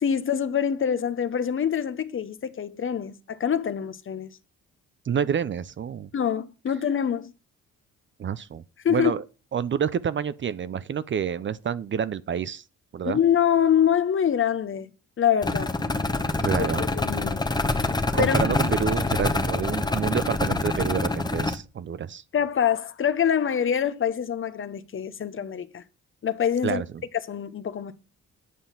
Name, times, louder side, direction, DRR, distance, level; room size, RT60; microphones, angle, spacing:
voice 1, 0.0-4.3 6.1-7.3 8.8-9.1 13.0-14.9 15.2-15.8 16.6-17.4 18.2-18.4 22.3-25.8 26.2-26.8 27.3-27.9, left 8 dB, 40° left, 0.9 m, -25 dB
voice 2, 5.1-6.1 8.2-8.6 8.9-9.2 9.5-12.6 12.9-13.2 16.4-16.8 18.1-22.2 26.6-27.0, right 7 dB, 40° right, 0.6 m, -28 dB
sound 1, 15.4-21.5, left 2 dB, 15° left, 1.0 m, -26 dB
9.3 x 5.5 x 5.7 m
cardioid pair, 90°, 30 cm